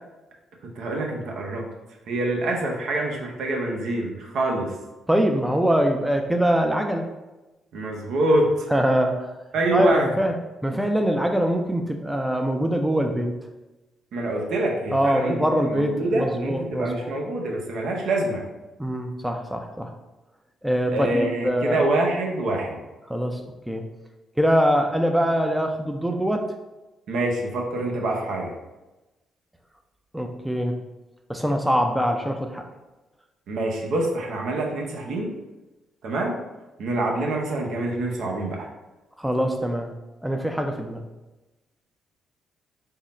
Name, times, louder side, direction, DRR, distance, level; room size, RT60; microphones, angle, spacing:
voice 1, 0.6-1.6 2.1-4.7 7.7-8.7 9.5-10.1 14.1-15.4 15.7-18.4 20.9-22.8 27.1-28.5 33.5-35.3 36.0-36.3 36.8-38.7, right 1 dB, 75° right, 0 dB, 0.8 m, -25 dB
voice 2, 5.1-7.1 8.7-9.3 9.7-10.3 10.6-13.3 14.9-17.1 18.8-19.9 20.6-21.8 23.1-23.4 23.7-23.8 24.4-26.4 30.1-30.8 31.3-32.6 39.2-39.9 40.2-41.0, equal, 5° right, 4 dB, 0.4 m, -23 dB
3.7 x 2.1 x 4.1 m, 1.1 s
cardioid pair, 90°, 0 cm